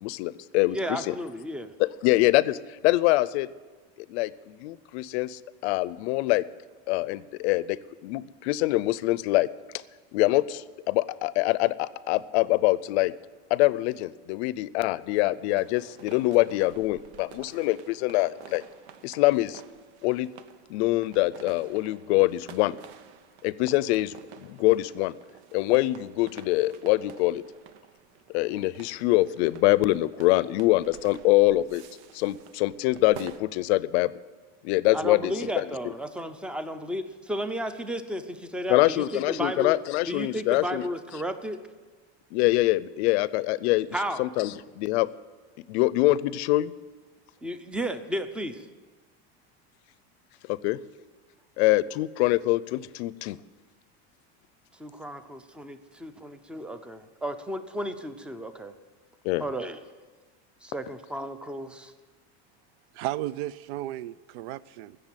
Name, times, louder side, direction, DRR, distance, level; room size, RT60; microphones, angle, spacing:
voice 1, 0.0-1.1 1.8-3.5 4.1-6.4 6.9-9.5 10.1-13.1 13.5-18.6 19.0-19.6 20.0-20.3 20.7-22.8 23.4-25.1 25.5-27.4 28.3-31.8 32.1-34.1 34.6-35.9 38.7-40.8 42.3-43.9 44.2-45.1 45.7-46.7 50.5-50.8 51.6-53.4 59.2-59.5, left 18 dB, 75° left, 0.6 m, -24 dB
voice 2, 0.7-1.7 34.9-39.8 40.1-41.6 43.9-44.2 47.4-48.7 54.8-58.7 59.4-59.8 60.6-61.9, equal, 5° right, 0.5 m, -33 dB
sound 1, 15.2-33.4, right 8 dB, 90° right, 1.0 m, -50 dB
voice 3, 63.0-65.0, right 14 dB, 70° right, 0.5 m, -34 dB
15.5 x 6.9 x 9.1 m
cardioid pair, 155°, 33 cm